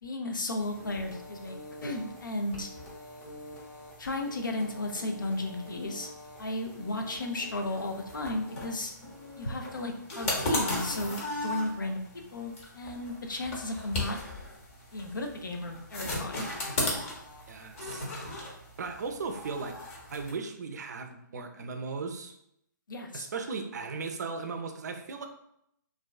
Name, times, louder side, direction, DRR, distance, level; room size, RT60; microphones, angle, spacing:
voice 1, 0.0-1.5 1.8-2.7 4.0-6.1 6.4-8.9 9.4-12.0 12.3-14.2 14.9-16.5 22.9-23.3, left 2 dB, 80° left, 3 dB, 0.5 m, -34 dB
sound 1, 0.6-20.3, left 1 dB, 40° left, 0.8 m, -38 dB
voice 2, 17.5-18.1 18.8-19.7 20.1-22.3 23.1-25.3, right 4 dB, 60° right, 6 dB, 0.4 m, -37 dB
2.5 x 2.1 x 2.3 m, 0.75 s
figure-of-eight pair, 135°, 11 cm